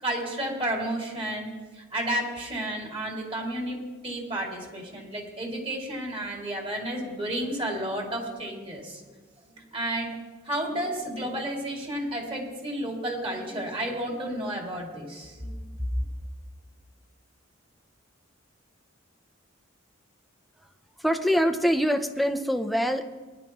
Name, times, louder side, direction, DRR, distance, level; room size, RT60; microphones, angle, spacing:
voice 1, 0.0-3.8 4.0-9.0 9.6-10.2 10.4-15.7, right 1 dB, 25° right, 0 dB, 2.6 m, -32 dB
voice 2, 21.0-23.0, equal, ahead, 6 dB, 0.6 m, -24 dB
19.5 x 11.0 x 3.0 m, 1.4 s
head